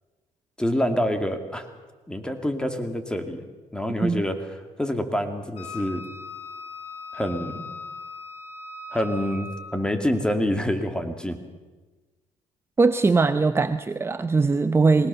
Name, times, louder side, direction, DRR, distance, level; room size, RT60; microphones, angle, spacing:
voice 1, 0.6-1.7 2.1-3.4 3.7-4.4 4.8-6.0 7.1-7.7 8.9-11.4, left 1 dB, 5° left, 7 dB, 2.5 m, -26 dB
Wind instrument woodwind instrument, 5.6-9.8, left 2 dB, 55° left, 3.6 m, -39 dB
voice 2, 12.8-15.1, right 4 dB, 20° right, 10 dB, 0.8 m, -21 dB
21.0 x 18.5 x 6.9 m, 1.3 s
cardioid pair, 90°, 12 cm